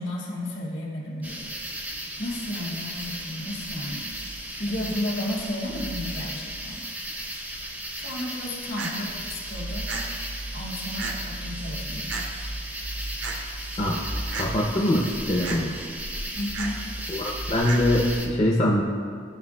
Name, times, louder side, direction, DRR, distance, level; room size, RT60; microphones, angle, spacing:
voice 1, 0.0-1.5 2.2-4.2 4.6-6.8 7.2-9.9 10.5-12.1 16.3-16.8, left 1 dB, 80° left, -3 dB, 1.8 m, -33 dB
sound 1, 1.2-18.3, right 1 dB, 10° right, 0.5 m, -34 dB
sound 2, 8.8-8.9 9.9-10.0 11.0-11.1 12.1-12.2 13.2-13.4 14.3-14.5 15.4-15.6 16.5-16.7 17.7-17.8, right 5 dB, 90° right, 0.8 m, -32 dB
voice 2, 14.3-15.7 17.1-18.8, left 1 dB, 35° left, -3 dB, 0.6 m, -23 dB
12.5 x 5.3 x 2.2 m, 2.2 s
head